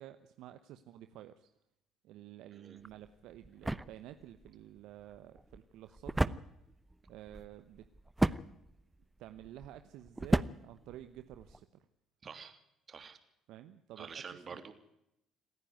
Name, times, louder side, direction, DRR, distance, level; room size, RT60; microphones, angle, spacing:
voice 1, 0.0-1.5 2.0-6.4 7.1-7.9 9.2-11.9 13.5-14.6, right 12 dB, 70° right, 9 dB, 0.9 m, -51 dB
sound 1, 2.8-11.6, right 2 dB, 15° right, 0.8 m, -36 dB
voice 2, 12.2-12.6 12.9-13.2 14.0-14.7, right 6 dB, 40° right, 8 dB, 3.1 m, -47 dB
28.0 x 10.0 x 9.4 m, 0.82 s
hypercardioid pair, 55°, 0 cm